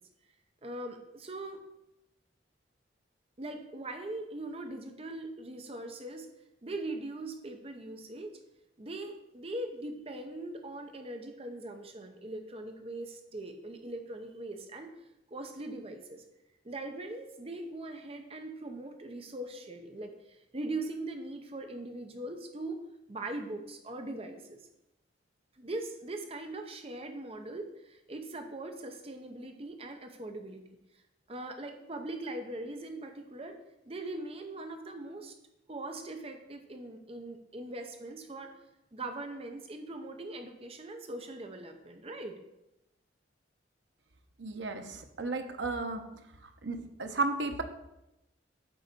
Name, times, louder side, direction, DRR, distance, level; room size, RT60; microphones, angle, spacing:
voice 1, 0.6-1.6 3.4-6.3 6.6-8.4 8.8-14.9 15.3-16.2 16.6-22.8 23.1-24.6 25.6-30.6 31.3-33.5 33.8-35.3 35.7-38.5 38.9-42.4, right 2 dB, 30° right, 5 dB, 0.7 m, -41 dB
voice 2, 44.4-46.0 46.6-47.6, right 3 dB, 70° right, 5 dB, 1.0 m, -33 dB
8.9 x 4.0 x 6.7 m, 0.89 s
head